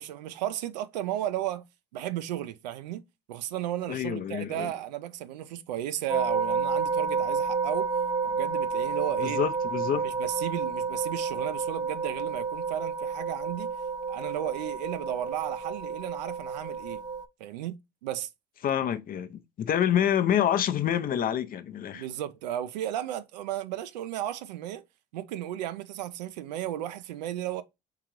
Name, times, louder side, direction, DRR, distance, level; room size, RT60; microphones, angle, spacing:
voice 1, 0.0-1.6 1.9-3.0 3.3-7.9 8.2-9.4 10.0-13.7 14.1-17.0 17.4-17.8 18.0-18.3 21.9-24.8 25.1-27.6, right 12 dB, 80° right, 0.5 m, -34 dB
voice 2, 3.9-4.7 9.2-10.1 18.6-22.0, left 9 dB, 40° left, 0.6 m, -27 dB
sound 1, 6.1-17.3, right 5 dB, 20° right, 0.5 m, -30 dB
3.8 x 3.6 x 2.9 m
hypercardioid pair, 70°, 21 cm